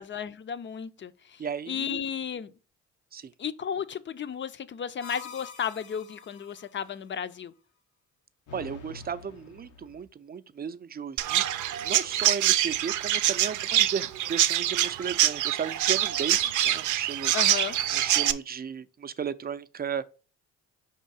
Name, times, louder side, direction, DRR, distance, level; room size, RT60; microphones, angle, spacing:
voice 1, 0.0-1.4 1.7-2.5 3.4-7.5 17.3-17.8, left 7 dB, 40° left, 0.6 m, -34 dB
voice 2, 1.4-2.0 3.1-3.3 8.5-17.3 17.9-20.1, right 7 dB, 30° right, 0.5 m, -35 dB
sound 1, 5.0-6.7 8.5-10.0, left 5 dB, 85° left, 1.0 m, -46 dB
Chirp tweet, 11.2-18.3, right 13 dB, 80° right, 0.5 m, -25 dB
5.1 x 3.7 x 5.5 m
cardioid pair, 90°, 30 cm